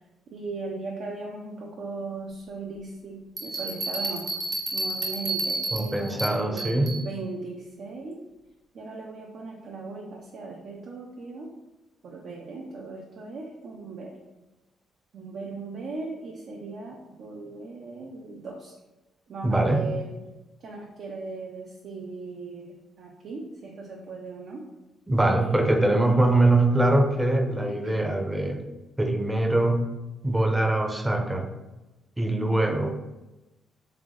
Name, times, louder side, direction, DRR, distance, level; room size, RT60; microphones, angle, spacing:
voice 1, 0.3-4.3 4.7-8.2 8.7-11.5 12.0-14.2 15.1-18.7 19.3-20.1 20.6-24.7 25.4-26.2 27.7-28.0, right 3 dB, 65° right, -1 dB, 0.6 m, -38 dB
Bell, 3.4-7.0, right 2 dB, 45° right, 1.2 m, -31 dB
voice 2, 5.7-6.9 19.4-19.9 25.1-28.6 29.0-29.9 30.2-31.5 32.2-32.9, right 2 dB, 10° right, 4 dB, 0.6 m, -23 dB
3.5 x 3.4 x 3.7 m, 1.0 s
cardioid pair, 90°, 0 cm